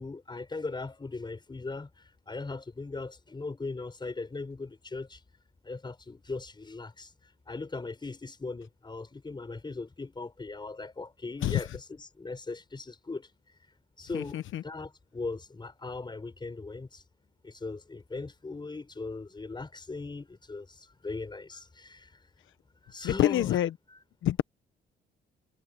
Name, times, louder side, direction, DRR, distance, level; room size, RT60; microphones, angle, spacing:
voice 1, 0.0-5.2 5.6-13.3 14.0-14.4 14.6-17.0 17.4-22.2 22.8-23.6 23.9-24.0, left 3 dB, 25° left, 4.9 m, -39 dB
voice 2, 14.1-14.6 23.0-23.7 24.2-24.4, left 13 dB, 80° left, 1.1 m, -26 dB
cardioid pair, 90°, 20 cm